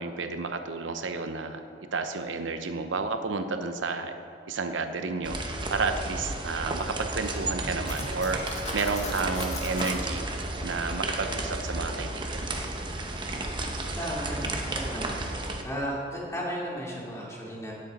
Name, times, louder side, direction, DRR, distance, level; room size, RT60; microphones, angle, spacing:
voice 1, 0.0-1.6 1.9-4.1 4.5-5.4 5.7-10.3 10.6-12.6, right 4 dB, 80° right, 7 dB, 0.7 m, -31 dB
sound 1, 5.2-15.6, right 2 dB, 25° right, 0.9 m, -33 dB
Cutlery silverware, 7.8-10.0, left 3 dB, 40° left, 1.4 m, -38 dB
voice 2, 14.0-15.2 15.6-17.7, equal, 15° left, -5 dB, 2.6 m, -34 dB
16.5 x 7.6 x 4.1 m, 2.5 s
head